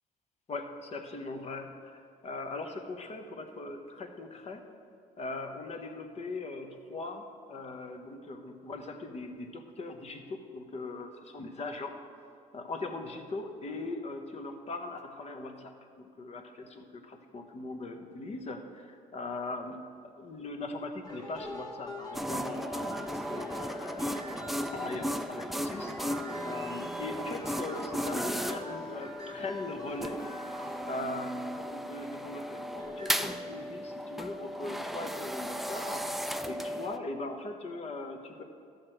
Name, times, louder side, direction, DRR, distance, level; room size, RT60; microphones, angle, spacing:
voice 1, 0.5-4.6 5.2-12.0 12.5-19.9 20.2-24.1 24.3-30.2 30.8-38.4, left 2 dB, 40° left, 5 dB, 1.0 m, -40 dB
sound 1, 21.0-31.5 32.6-33.3, left 1 dB, 20° left, 1.5 m, -44 dB
sound 2, 22.1-37.0, equal, ahead, 0.4 m, -36 dB
13.5 x 6.6 x 4.5 m, 2.5 s
cardioid pair, 110°, 17 cm